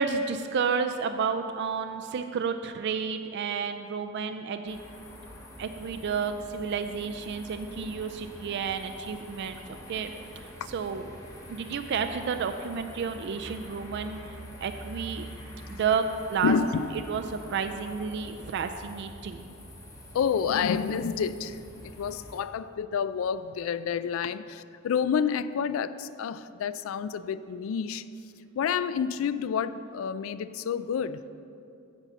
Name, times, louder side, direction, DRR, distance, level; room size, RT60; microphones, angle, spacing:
voice 1, 0.0-4.8 5.6-9.6 9.9-11.1 11.5-14.2 14.6-15.3 15.7-16.5 17.1-19.5, right 6 dB, 55° right, 0.4 m, -31 dB
sound 1, 4.7-22.4, equal, 15° left, 1.0 m, -46 dB
voice 2, 16.4-16.9 20.1-21.6 22.0-28.1 28.6-31.2, left 7 dB, 75° left, 0.3 m, -29 dB
9.7 x 4.0 x 7.2 m
head